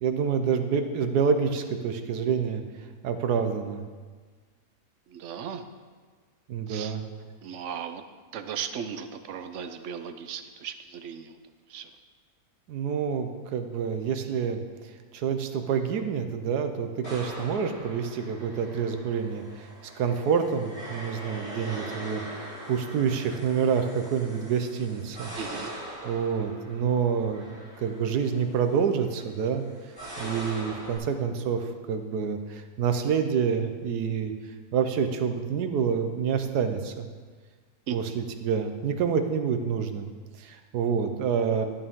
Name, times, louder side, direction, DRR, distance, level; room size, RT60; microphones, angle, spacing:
voice 1, 0.0-2.6 3.0-3.8 6.5-7.0 12.7-14.6 15.1-19.7 20.0-25.3 26.0-27.4 27.8-29.6 30.2-34.3 34.7-37.1 37.9-40.1 40.4-41.7, right 6 dB, 80° right, 7 dB, 1.3 m, -27 dB
voice 2, 5.1-5.6 6.7-6.9 7.4-8.0 8.3-11.4 11.7-11.9 25.4-25.7 37.9-38.0, right 8 dB, 60° right, 9 dB, 0.9 m, -36 dB
sound 1, 17.0-31.0, right 1 dB, 35° left, 3.6 m, -42 dB
13.0 x 8.8 x 3.7 m, 1.5 s
omnidirectional pair, 1.7 m